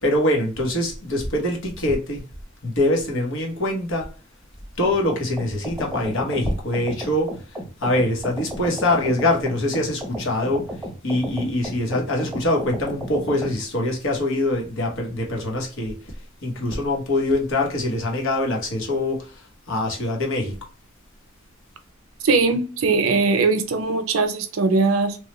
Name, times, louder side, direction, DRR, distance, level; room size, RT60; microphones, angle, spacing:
voice 1, 0.0-2.2 2.6-4.1 4.8-7.3 7.8-10.6 11.0-16.0 16.4-19.2 19.7-20.6, left 1 dB, 70° left, 1.1 m, -23 dB
sound 1, 4.8-13.6, equal, 5° right, 0.8 m, -34 dB
voice 2, 22.2-25.2, right 3 dB, 85° right, 0.6 m, -20 dB
3.1 x 2.3 x 3.0 m
head